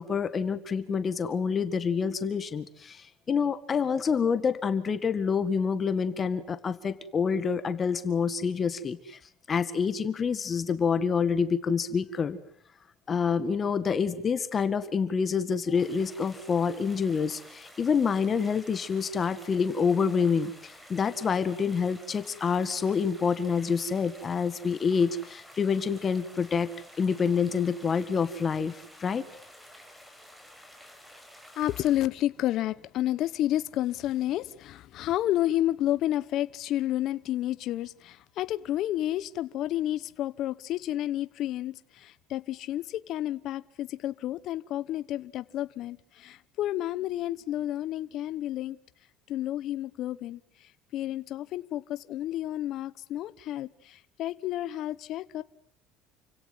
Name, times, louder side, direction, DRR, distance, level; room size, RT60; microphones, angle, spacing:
voice 1, 0.0-9.2 9.5-12.4 13.1-26.7 27.0-29.3, left 6 dB, 30° left, 12 dB, 1.8 m, -27 dB
sound 1, 15.8-32.0, equal, 5° right, 4.9 m, -51 dB
voice 2, 31.6-48.8 49.3-55.4, left 13 dB, 55° left, 15 dB, 1.0 m, -31 dB
29.0 x 17.0 x 9.4 m, 0.65 s
cardioid pair, 120°, 0 cm